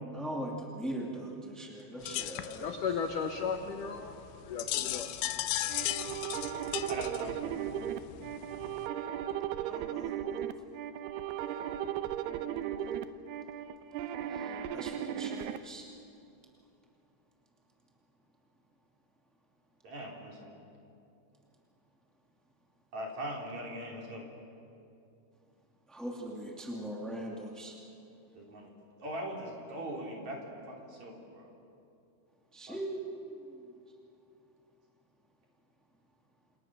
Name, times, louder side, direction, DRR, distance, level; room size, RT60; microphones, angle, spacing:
voice 1, 0.1-2.8 9.6-10.5 14.3-15.9 25.9-27.8 32.5-33.7, right 1 dB, ahead, -1 dB, 0.5 m, -41 dB
sound 1, 2.0-8.9, left 14 dB, 90° left, 3.1 m, -37 dB
voice 2, 2.6-5.1, left 6 dB, 70° left, 5 dB, 2.0 m, -35 dB
sound 2, 5.7-15.6, right 10 dB, 80° right, 2.7 m, -36 dB
voice 3, 6.9-7.5 19.8-20.5 22.9-24.3 28.4-28.7 29.0-31.5 32.7-32.8, right 1 dB, 45° right, -1 dB, 4.3 m, -41 dB
28.5 x 28.0 x 6.1 m, 2.7 s
omnidirectional pair, 5.0 m